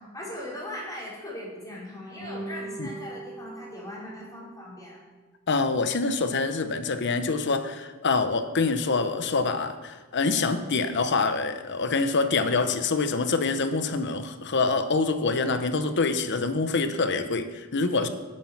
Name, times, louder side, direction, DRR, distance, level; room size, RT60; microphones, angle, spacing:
voice 1, 0.0-5.0, left 1 dB, 15° left, -6 dB, 4.7 m, -39 dB
sound 1, 2.2-4.7, right 3 dB, 75° left, 4.3 m, -40 dB
voice 2, 5.5-18.1, left 3 dB, 55° left, 9 dB, 0.8 m, -25 dB
12.5 x 8.6 x 5.9 m, 1.2 s
head